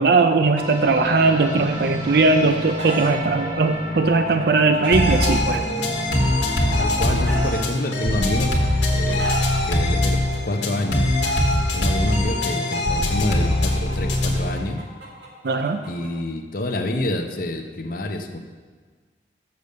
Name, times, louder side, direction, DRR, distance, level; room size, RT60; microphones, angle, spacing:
voice 1, 0.0-5.6 15.4-15.8, right 3 dB, 55° right, 6 dB, 0.4 m, -19 dB
sound 1, 0.6-7.5, left 1 dB, 30° right, 1.4 m, -30 dB
Chicken rooster, 2.0-3.1 4.2-5.2 6.2-7.6 8.5-9.6 10.6-11.6 12.8-16.1, right 2 dB, 70° right, 1.7 m, -33 dB
sound 2, 4.9-14.5, left 1 dB, 75° left, 1.4 m, -22 dB
voice 2, 6.8-9.3 9.6-11.1 11.7-14.8 15.9-18.4, left 1 dB, 50° left, 5 dB, 0.7 m, -27 dB
6.8 x 6.6 x 6.6 m, 1.5 s
head